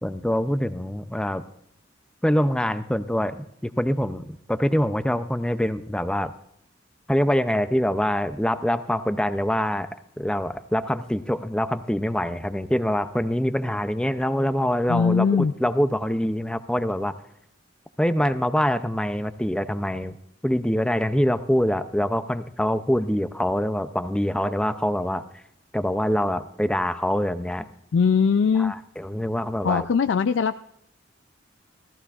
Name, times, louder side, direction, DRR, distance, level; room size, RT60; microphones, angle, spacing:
voice 1, 0.0-1.4 2.2-3.3 3.6-6.3 7.1-9.9 10.2-17.1 18.0-20.2 20.4-25.4 25.7-27.6 28.6-29.8, equal, 5° left, 11 dB, 0.4 m, -24 dB
voice 2, 14.9-15.5 27.9-28.7 29.6-30.6, left 6 dB, 80° left, 9 dB, 0.4 m, -21 dB
17.5 x 14.0 x 2.4 m, 0.76 s
head